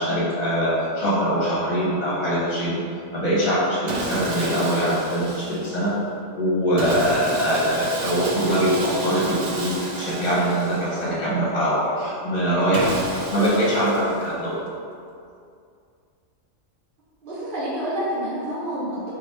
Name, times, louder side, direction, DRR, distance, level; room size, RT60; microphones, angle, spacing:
voice 1, 0.0-2.8 3.1-5.9 6.4-12.9 13.3-14.6, equal, 35° left, -8 dB, 0.9 m, -22 dB
Sawing, 3.9-5.9 6.8-11.3 12.7-14.5, right 2 dB, 90° right, 0.3 m, -32 dB
voice 2, 17.2-19.1, equal, 45° right, -11 dB, 1.1 m, -29 dB
3.5 x 2.3 x 4.0 m, 2.4 s
omnidirectional pair, 1.3 m